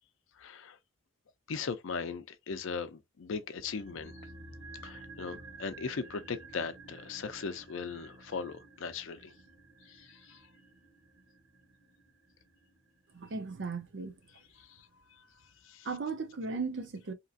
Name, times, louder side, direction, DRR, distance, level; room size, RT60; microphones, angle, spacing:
voice 1, 0.4-0.8 1.5-4.2 4.8-9.3 9.9-10.4 14.6-14.9 15.6-15.9, left 5 dB, 65° left, 0.5 m, -39 dB
sound 1, 3.6-13.8 14.1-14.2, right 3 dB, 75° right, 1.0 m, -52 dB
voice 2, 13.1-14.2 15.8-17.1, right 4 dB, 55° right, 0.6 m, -36 dB
2.9 x 2.6 x 2.4 m
head